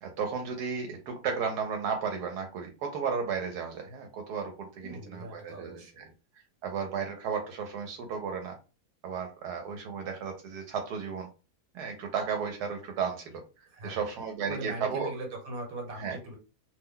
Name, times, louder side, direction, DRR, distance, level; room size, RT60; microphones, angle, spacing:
voice 1, 0.0-6.0 6.6-8.5 9.0-11.3 11.7-13.4 13.8-15.1 16.0-16.2, right 6 dB, 85° right, 4 dB, 1.2 m, -34 dB
voice 2, 4.8-6.1 13.7-14.0 14.5-16.4, right 2 dB, 60° right, 2 dB, 1.4 m, -40 dB
2.8 x 2.1 x 3.6 m, 0.32 s
omnidirectional pair, 1.7 m